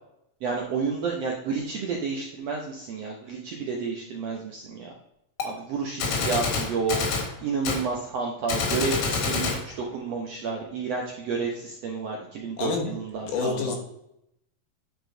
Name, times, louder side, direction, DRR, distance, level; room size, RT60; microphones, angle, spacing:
voice 1, 0.4-4.9 5.4-7.0 7.4-13.8, right 4 dB, 70° right, 0 dB, 1.5 m, -30 dB
Gunshot gunfire, 5.4-5.5 6.0-7.3 7.7-7.8 8.5-9.6, left 4 dB, 85° left, 3.3 m, -27 dB
voice 2, 12.6-12.9 13.2-13.8, left 5 dB, 70° left, 1 dB, 2.7 m, -28 dB
9.7 x 4.9 x 3.9 m, 0.81 s
omnidirectional pair, 4.0 m